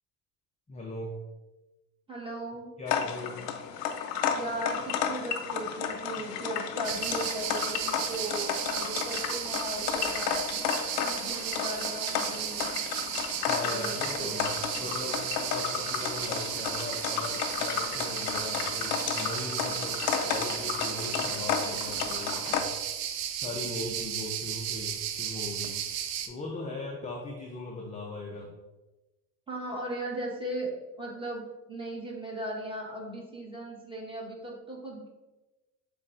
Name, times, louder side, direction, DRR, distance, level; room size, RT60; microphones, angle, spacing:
voice 1, 0.7-1.2 2.8-3.5 13.5-22.7 23.3-25.9 26.2-28.5, left 2 dB, 15° left, -2 dB, 0.6 m, -39 dB
voice 2, 2.1-2.7 4.3-10.4 11.0-12.7 13.6-14.4 29.5-35.1, right 1 dB, 10° right, -4 dB, 1.5 m, -37 dB
sound 1, 2.9-22.6, left 8 dB, 90° left, 0.5 m, -32 dB
sound 2, 6.8-26.3, right 9 dB, 85° right, 0.5 m, -34 dB
7.1 x 2.4 x 2.7 m, 1.1 s
hypercardioid pair, 75°, 47 cm